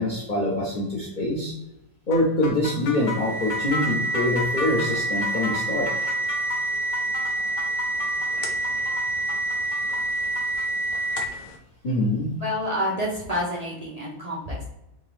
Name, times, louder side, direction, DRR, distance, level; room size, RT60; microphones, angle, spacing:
voice 1, 0.0-1.5 2.1-5.9 11.8-12.3, left 1 dB, 40° left, -6 dB, 0.7 m, -24 dB
sound 1, 2.1-10.7, left 4 dB, 90° left, 1.3 m, -35 dB
sound 2, 2.9-11.5, right 2 dB, 70° left, 1.1 m, -27 dB
voice 2, 12.4-14.6, equal, 40° right, -4 dB, 0.5 m, -28 dB
3.7 x 2.9 x 3.2 m, 0.87 s
omnidirectional pair, 1.7 m